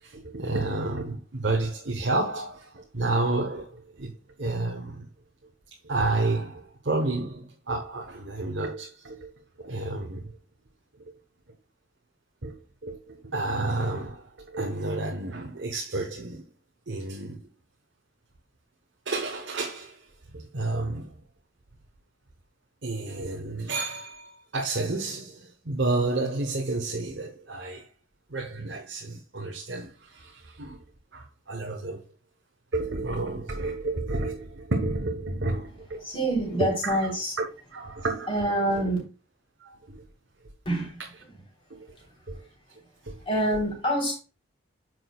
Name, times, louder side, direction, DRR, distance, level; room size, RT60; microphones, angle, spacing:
voice 1, 0.0-4.1 4.4-5.0 5.8-9.3 9.6-10.4 11.0-11.1 12.4-12.5 12.8-16.4 16.9-17.5 19.1-20.1 20.3-21.1 22.8-27.9 28.3-30.8 31.1-32.0 32.7-36.0 36.6-37.0 37.4-37.5 37.7-38.3 39.6-40.0 41.7-42.0 42.3-42.4 43.0-43.2, right 2 dB, 60° right, 1.0 m, -30 dB
voice 2, 36.0-37.3 38.3-39.0 40.7-41.0 43.2-44.1, right 1 dB, 25° left, 3.6 m, -26 dB
9.3 x 6.2 x 2.3 m
head